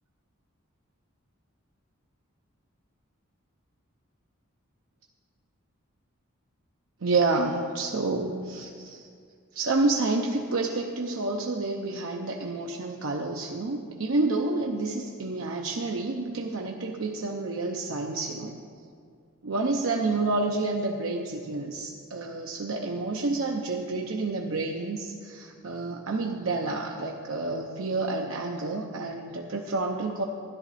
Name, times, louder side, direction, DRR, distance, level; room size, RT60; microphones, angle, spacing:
voice 1, 7.0-9.1 9.5-18.6 19.4-30.2, right 3 dB, 75° right, 1 dB, 0.7 m, -29 dB
13.5 x 11.0 x 4.1 m, 2.2 s
head